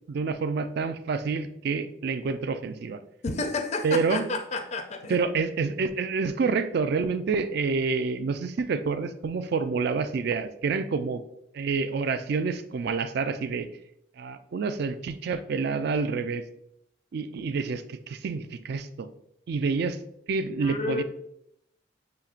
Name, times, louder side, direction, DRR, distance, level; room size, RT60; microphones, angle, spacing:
voice 1, 0.1-3.0 3.8-4.3 5.1-11.2 11.5-13.7 14.2-16.4 17.1-19.1 19.5-20.0 20.3-21.0, right 4 dB, 50° right, 11 dB, 0.3 m, -28 dB
voice 2, 3.2-5.2 20.6-21.0, left 3 dB, 35° left, 7 dB, 0.4 m, -31 dB
6.8 x 2.9 x 2.4 m, 0.75 s
head